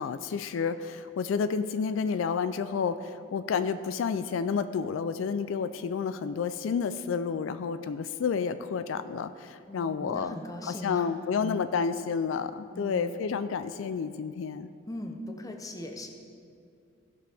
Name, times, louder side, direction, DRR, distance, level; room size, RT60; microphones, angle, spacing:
voice 1, 0.0-10.4 10.7-14.7, left 6 dB, 80° left, 11 dB, 0.3 m, -30 dB
voice 2, 9.7-11.6 12.7-13.1 14.9-16.1, equal, 20° left, 3 dB, 0.7 m, -40 dB
15.5 x 5.9 x 3.5 m, 2.4 s
head